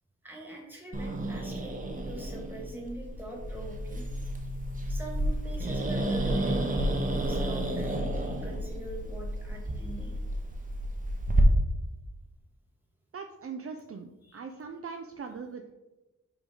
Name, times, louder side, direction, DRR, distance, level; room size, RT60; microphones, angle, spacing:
voice 1, 0.2-4.0 4.9-10.1 14.2-14.4, right 1 dB, 5° right, 0 dB, 1.8 m, -42 dB
Growling, 0.9-11.4, right 1 dB, 25° right, 0.9 m, -31 dB
Boom, 3.1-8.9, left 1 dB, 15° left, 1.6 m, -44 dB
voice 2, 13.1-15.7, right 5 dB, 45° right, 4 dB, 0.5 m, -41 dB
5.1 x 4.8 x 3.8 m, 1.0 s
wide cardioid pair, 90°, 31 cm